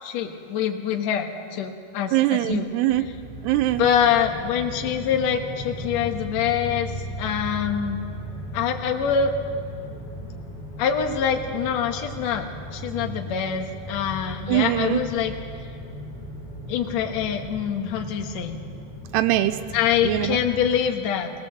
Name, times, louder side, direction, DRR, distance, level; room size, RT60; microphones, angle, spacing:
voice 1, 0.0-2.7 3.8-6.9 7.2-8.0 8.5-9.3 10.8-12.5 12.7-15.3 16.7-18.6 19.7-21.3, left 8 dB, 60° left, 4 dB, 1.9 m, -25 dB
voice 2, 2.1-3.1 3.4-3.9 13.0-13.2 14.5-15.0 19.1-19.6 20.0-20.4, right 15 dB, 90° right, 11 dB, 2.8 m, -22 dB
sound 1, 2.9-20.8, equal, 25° left, 4.1 m, -37 dB
20.5 x 18.5 x 7.5 m, 2.3 s
omnidirectional pair, 4.7 m